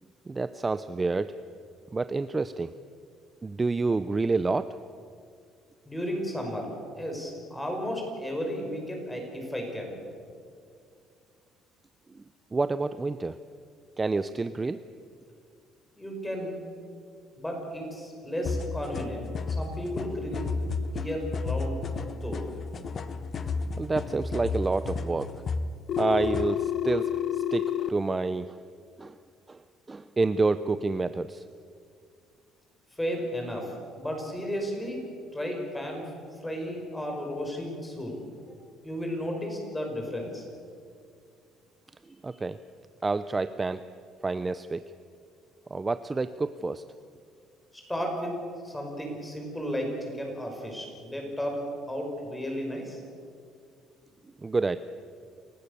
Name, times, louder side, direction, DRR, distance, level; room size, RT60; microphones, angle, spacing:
voice 1, 0.3-1.4 1.9-2.7 3.4-4.8 12.1-12.2 12.5-13.4 14.0-14.8 23.5-25.3 26.0-28.6 29.0-29.2 29.5-31.4 42.1-42.6 43.0-43.8 44.2-44.9 45.7-46.8 54.4-54.8, right 3 dB, 20° right, 13 dB, 0.5 m, -28 dB
voice 2, 5.9-10.0 16.0-16.6 17.4-20.5 20.9-21.8 22.2-22.5 33.0-35.0 35.3-36.1 36.4-38.2 38.5-38.6 38.8-40.4 47.7-48.3 48.6-53.0, equal, 5° left, 1 dB, 5.6 m, -34 dB
sound 1, 18.5-26.5, left 3 dB, 40° left, 1.1 m, -33 dB
Telephone, 25.9-27.9, left 11 dB, 55° left, 0.5 m, -29 dB
28.5 x 15.5 x 6.8 m, 2.3 s
cardioid pair, 130°, 0 cm